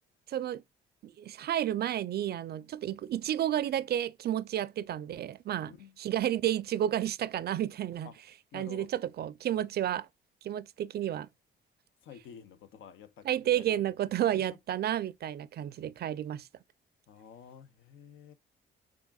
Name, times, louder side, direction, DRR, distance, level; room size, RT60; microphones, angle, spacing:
voice 1, 0.3-0.6 1.0-8.1 8.5-10.1 10.4-11.3 13.2-16.5, right 11 dB, 55° right, 0.4 m, -31 dB
voice 2, 5.6-6.0 8.0-8.2 8.5-8.9 12.0-13.8 14.3-14.4 17.1-18.3, left 8 dB, 75° left, 0.7 m, -50 dB
3.6 x 3.5 x 2.3 m
cardioid pair, 90°, 20 cm